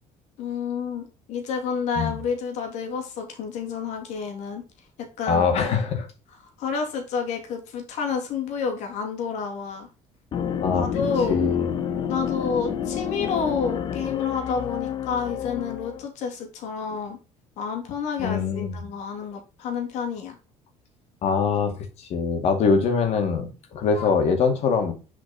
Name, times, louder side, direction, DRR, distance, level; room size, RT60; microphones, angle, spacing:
voice 1, 0.4-4.6 5.2-5.5 6.6-9.9 10.7-11.4 12.1-17.2 17.6-20.4 23.9-24.1, left 5 dB, 75° left, 3 dB, 2.6 m, -29 dB
voice 2, 5.3-6.1 10.6-11.0 11.3-11.7 18.2-18.8 21.2-24.9, left 5 dB, 60° left, 5 dB, 2.3 m, -23 dB
sound 1, 10.3-16.0, left 8 dB, 40° left, 0.9 m, -29 dB
7.2 x 5.1 x 4.2 m, 0.31 s
cardioid pair, 135°, 12 cm